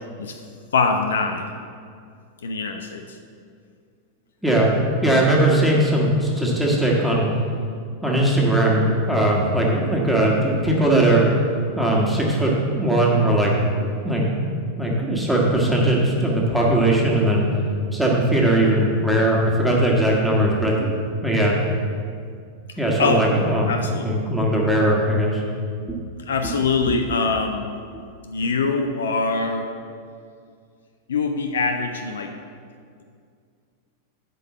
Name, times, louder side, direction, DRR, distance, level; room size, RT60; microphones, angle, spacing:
voice 1, 0.7-1.5 2.4-3.0 23.0-23.3 23.7-24.1 26.3-27.7 28.2-29.7 31.1-32.3, left 4 dB, 65° left, 5 dB, 0.6 m, -23 dB
voice 2, 5.0-7.3 8.0-11.2 11.8-14.3 14.8-17.5 17.9-21.5 22.8-23.7 24.0-25.4 25.9-26.0 26.9-27.0 27.9-28.0, right 1 dB, ahead, -4 dB, 1.9 m, -19 dB
7.7 x 5.4 x 7.5 m, 2.2 s
figure-of-eight pair, 90°, 0 cm